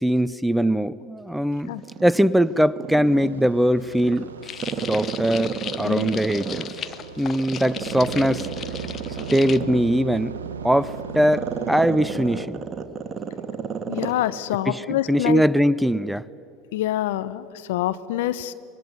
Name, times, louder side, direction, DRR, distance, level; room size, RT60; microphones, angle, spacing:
voice 1, 0.0-1.7 2.0-4.3 4.9-6.6 7.2-8.5 9.3-10.3 10.6-12.6 14.7-14.8 15.1-16.2, equal, 5° right, 18 dB, 0.6 m, -21 dB
Growling, 1.8-3.5 3.9-6.9 7.4-14.2 14.5-14.6, right 6 dB, 30° right, 2.3 m, -31 dB
sound 1, 3.0-12.4, right 6 dB, 85° right, 1.0 m, -38 dB
sound 2, 4.4-9.6, left 8 dB, 35° left, 0.9 m, -37 dB
voice 2, 13.9-15.4 16.7-18.5, left 14 dB, 70° left, 13 dB, 1.0 m, -26 dB
25.5 x 22.0 x 9.5 m, 2.6 s
hypercardioid pair, 80°, 0 cm